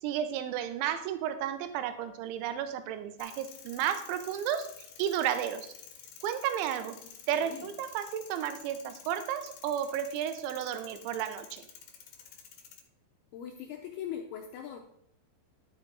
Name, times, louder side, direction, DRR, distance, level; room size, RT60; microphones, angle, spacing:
voice 1, 0.0-4.7 5.0-5.7 6.2-7.0 7.3-11.7, right 10 dB, 80° right, 10 dB, 3.1 m, -32 dB
sound 1, 3.2-12.8, left 7 dB, 65° left, 2.8 m, -51 dB
voice 2, 7.3-7.7 13.3-14.8, left 9 dB, 90° left, 2 dB, 2.2 m, -40 dB
12.0 x 6.2 x 3.9 m, 0.72 s
omnidirectional pair, 5.5 m